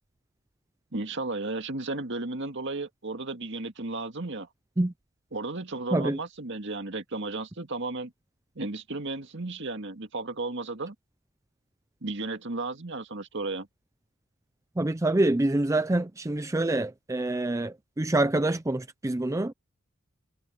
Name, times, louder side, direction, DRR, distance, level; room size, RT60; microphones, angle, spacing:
voice 1, 0.9-4.5 5.3-8.1 8.6-10.9 12.0-13.7, right 2 dB, 55° right, 1.9 m, -34 dB
voice 2, 14.8-19.5, right 2 dB, 15° right, 0.5 m, -26 dB
head